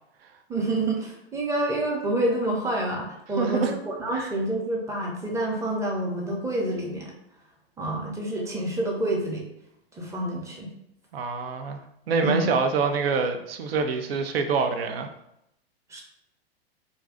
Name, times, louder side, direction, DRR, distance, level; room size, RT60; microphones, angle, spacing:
voice 1, 0.5-7.1 7.8-9.5 9.9-10.7 12.2-12.5 15.9-16.0, right 1 dB, 10° right, -2 dB, 0.7 m, -28 dB
voice 2, 3.4-3.7 4.1-4.3 11.1-11.8 12.1-15.1, right 5 dB, 70° right, 6 dB, 0.6 m, -25 dB
2.6 x 2.3 x 3.6 m, 0.80 s
hypercardioid pair, 105°, 31 cm